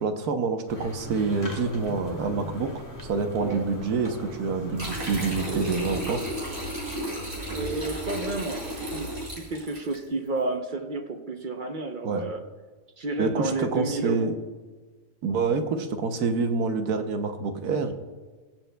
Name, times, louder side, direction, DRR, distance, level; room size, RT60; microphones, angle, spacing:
voice 1, 0.0-6.2 12.0-12.3 13.2-14.3 15.2-17.9, right 4 dB, 80° right, 7 dB, 1.4 m, -27 dB
sound 1, 0.7-6.1, equal, 10° left, 1.6 m, -40 dB
voice 2, 3.4-3.7 7.5-12.4 13.0-14.3, right 2 dB, 45° right, 5 dB, 0.7 m, -31 dB
sound 2, 4.8-10.0, equal, 65° right, 4.1 m, -33 dB
22.0 x 7.4 x 2.2 m, 1.4 s
omnidirectional pair, 1.6 m